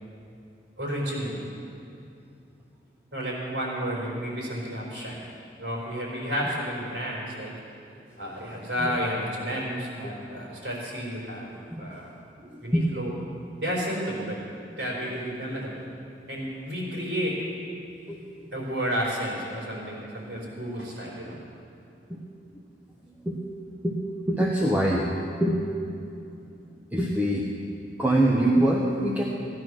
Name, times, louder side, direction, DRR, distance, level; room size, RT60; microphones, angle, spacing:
voice 1, 0.8-1.4 3.1-5.2 5.6-7.5 8.2-11.5 11.8-12.1 12.6-13.1 13.6-14.4 14.7-15.9 16.3-17.4 18.5-21.4, equal, 70° right, -4 dB, 4.4 m, -31 dB
voice 2, 12.5-12.9 18.1-18.5 22.1-22.2 23.2-23.4 23.8-24.0 24.3-25.1 25.4-25.6 26.9-27.5 28.0-29.2, right 1 dB, 10° right, -3 dB, 1.0 m, -24 dB
16.0 x 10.5 x 6.3 m, 2.6 s
head